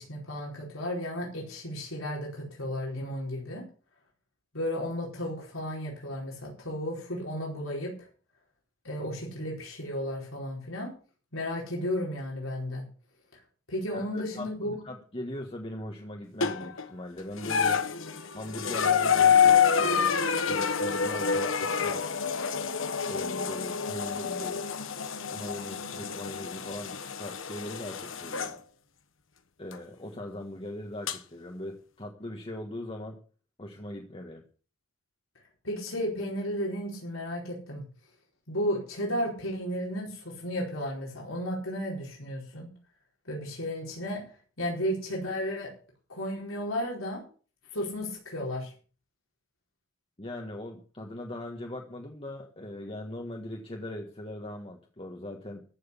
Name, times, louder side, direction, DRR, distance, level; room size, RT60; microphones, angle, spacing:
voice 1, 0.0-3.6 4.5-8.1 8.8-10.9 11.3-12.9 13.7-14.8 35.6-37.8 38.5-42.7 43.3-44.2 44.6-45.7 46.1-47.2 47.7-48.7, equal, 85° left, -2 dB, 4.6 m, -33 dB
voice 2, 13.9-17.8 18.3-22.2 23.1-24.6 25.1-28.6 29.6-33.2 33.6-34.4 50.2-55.6, left 1 dB, 30° left, 1 dB, 1.6 m, -40 dB
sound 1, 16.4-16.9 17.4-28.6 29.7-29.8 31.1-31.2, left 7 dB, 70° left, 1.2 m, -27 dB
14.5 x 6.3 x 8.4 m, 0.40 s
head